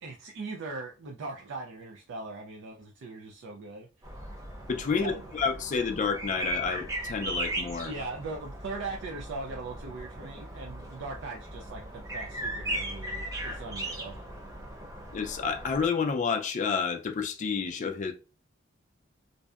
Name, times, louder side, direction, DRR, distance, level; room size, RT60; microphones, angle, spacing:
voice 1, 0.0-3.9 5.0-5.2 7.8-14.2, right 3 dB, 65° right, 0.4 m, -40 dB
sound 1, 4.0-15.9, right 1 dB, 15° right, 0.7 m, -38 dB
voice 2, 4.7-7.9 15.1-18.1, left 5 dB, 40° left, 0.4 m, -29 dB
2.6 x 2.1 x 2.3 m
head